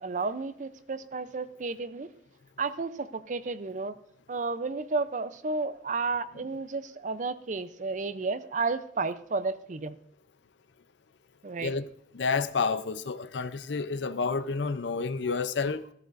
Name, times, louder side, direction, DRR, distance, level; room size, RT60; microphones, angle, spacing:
voice 1, 0.0-2.1 2.6-4.0 4.3-10.0 11.4-11.7, right 4 dB, 45° right, 0.5 m, -32 dB
voice 2, 11.6-11.9 12.1-15.9, left 4 dB, 75° left, 0.6 m, -30 dB
14.0 x 13.5 x 2.6 m
head